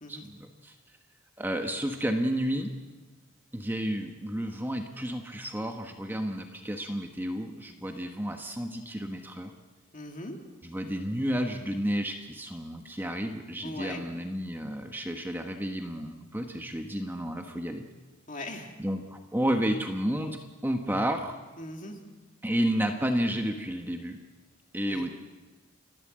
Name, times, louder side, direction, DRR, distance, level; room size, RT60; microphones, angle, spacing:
voice 1, 0.1-0.7 1.4-2.7 3.5-9.5 10.6-17.8 18.8-21.4 22.4-24.2 24.7-25.1, equal, 10° right, 4 dB, 1.2 m, -31 dB
voice 2, 9.9-10.4 13.6-14.0 18.3-18.7 21.6-22.0 24.9-25.1, left 1 dB, 40° left, 3 dB, 2.3 m, -39 dB
30.0 x 12.5 x 7.6 m, 1.2 s
head